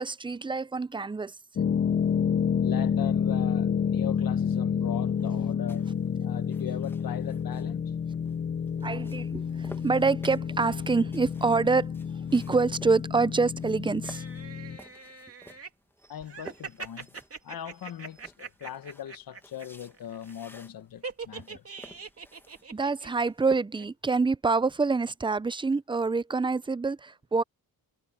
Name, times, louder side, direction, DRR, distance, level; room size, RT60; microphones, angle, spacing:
voice 1, 0.0-1.3 8.8-11.9 12.3-14.2 22.7-27.4, right 4 dB, 15° right, 0.6 m, -26 dB
sound 1, 1.6-14.8, left 7 dB, 30° left, 0.5 m, -29 dB
voice 2, 2.6-5.9 6.2-7.9 16.1-17.2 17.4-21.6, left 10 dB, 70° left, 1.3 m, -40 dB
sound 2, 5.7-23.6, left 1 dB, 5° left, 1.5 m, -53 dB
sound 3, 14.0-15.7 16.2-19.7 19.9-20.3 21.0-23.5 23.8-23.9, right 4 dB, 40° right, 3.0 m, -42 dB
cardioid pair, 90°, 36 cm